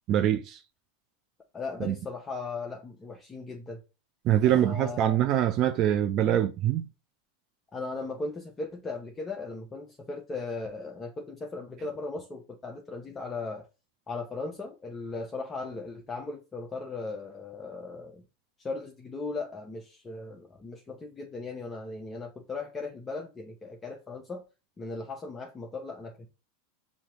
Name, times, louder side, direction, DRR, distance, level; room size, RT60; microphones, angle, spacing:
voice 1, 0.1-0.6 1.8-2.0 4.2-6.9, right 11 dB, 45° right, 0.5 m, -24 dB
voice 2, 1.5-3.8 4.5-5.2 7.7-13.7 14.1-18.2 18.6-24.4 24.8-26.3, left 3 dB, 20° left, 0.7 m, -37 dB
6.3 x 2.8 x 2.9 m
hypercardioid pair, 110°, 0 cm